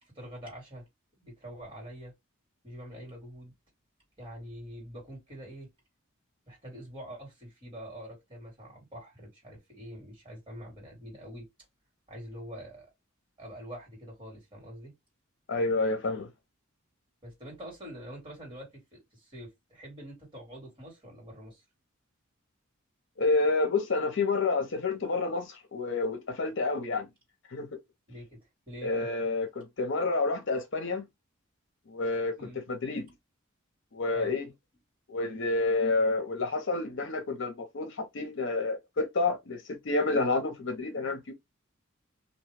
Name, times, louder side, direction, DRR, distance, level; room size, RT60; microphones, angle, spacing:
voice 1, 0.0-0.9 1.2-2.1 2.6-3.5 4.2-5.7 6.5-11.5 12.1-12.9 13.4-14.9 17.2-21.6 27.5-27.6 28.1-28.4 28.7-29.1 32.4-32.6 34.1-34.3, equal, 25° right, 1.8 m, -45 dB
voice 2, 15.5-16.3 23.2-27.1 27.5-27.7 28.8-31.0 31.9-33.1 33.9-34.5 35.1-41.3, left 3 dB, 60° left, 0.7 m, -29 dB
2.6 x 2.2 x 3.2 m
head